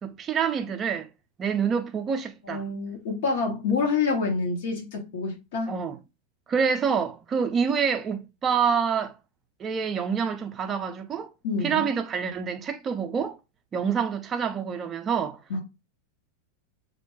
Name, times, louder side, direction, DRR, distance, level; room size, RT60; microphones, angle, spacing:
voice 1, 0.0-1.1 1.4-2.6 5.7-6.0 6.5-9.1 9.6-11.3 11.6-13.4 13.7-15.4, right 6 dB, 30° right, 0.3 m, -27 dB
voice 2, 2.4-5.7 11.4-11.9 15.5-15.6, left 4 dB, 65° left, 0.8 m, -27 dB
2.2 x 2.1 x 3.0 m
hypercardioid pair, 95°, 0 cm